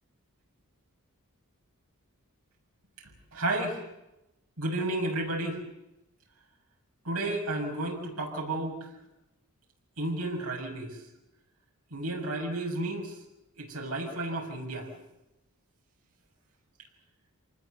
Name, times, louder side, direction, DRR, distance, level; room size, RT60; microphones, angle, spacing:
voice 1, 3.0-3.8 4.6-5.6 7.0-8.9 10.0-11.0 11.9-13.2 13.6-14.9, right 2 dB, 80° right, 0 dB, 6.4 m, -32 dB
27.5 x 19.5 x 8.0 m, 0.91 s
head